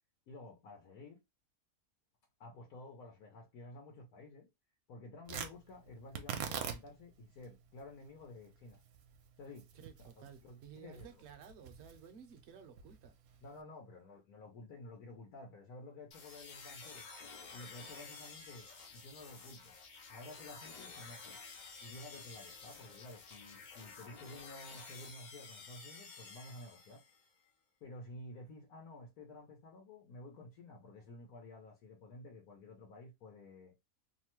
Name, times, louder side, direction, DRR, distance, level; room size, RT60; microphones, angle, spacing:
voice 1, 0.3-1.2 2.4-4.5 4.9-8.8 9.4-9.7 10.2-11.1 13.4-17.1 17.5-19.8 20.1-21.4 21.8-27.0 27.8-33.7, left 2 dB, 90° left, 1.3 m, -52 dB
Tearing, 5.2-13.6, right 7 dB, 80° right, 1.0 m, -46 dB
voice 2, 9.7-13.1, right 7 dB, 60° right, 0.8 m, -55 dB
sound 1, 16.1-27.3, left 4 dB, 65° left, 0.4 m, -52 dB
3.0 x 2.2 x 2.9 m
omnidirectional pair, 1.5 m